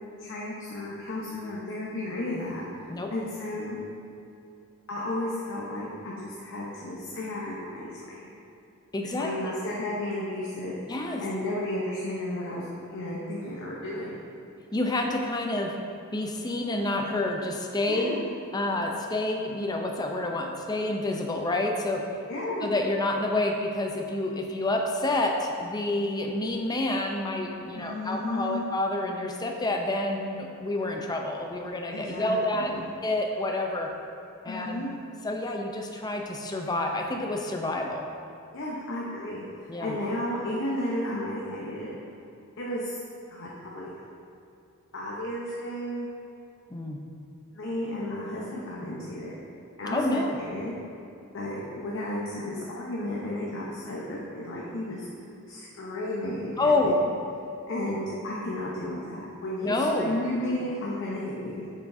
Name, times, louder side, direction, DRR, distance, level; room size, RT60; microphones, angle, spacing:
voice 1, 0.2-2.6 3.1-3.8 4.9-8.3 9.2-10.7 11.2-14.2 17.9-18.3 22.3-22.7 27.7-28.6 31.9-32.9 34.5-34.9 38.5-42.0 42.6-43.0 43.3-43.9 44.9-46.1 47.5-49.3 49.8-50.8 51.3-55.1 55.5-56.9 57.7-61.7, left 1 dB, 60° left, -5 dB, 0.8 m, -33 dB
voice 2, 8.9-9.5 10.9-11.2 14.7-15.7 16.1-18.1 18.5-22.0 22.6-32.7 33.0-33.9 34.4-34.8 35.2-38.0 39.7-40.0 46.7-47.0 49.9-50.4 56.6-57.0 59.6-60.2, left 2 dB, 20° left, 1 dB, 0.5 m, -28 dB
7.3 x 5.9 x 2.6 m, 2.7 s
head